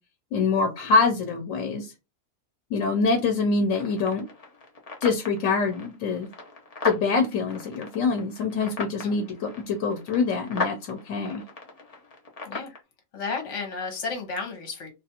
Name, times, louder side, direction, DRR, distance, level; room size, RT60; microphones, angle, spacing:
voice 1, 0.3-1.9 2.7-4.3 5.0-6.3 6.8-11.4, left 4 dB, 90° left, 4 dB, 1.0 m, -25 dB
sound 1, 3.7-12.8, left 3 dB, 40° left, 0.6 m, -37 dB
voice 2, 13.1-14.9, left 4 dB, 65° left, 4 dB, 1.2 m, -32 dB
2.5 x 2.4 x 2.7 m, 0.26 s
omnidirectional pair, 1.3 m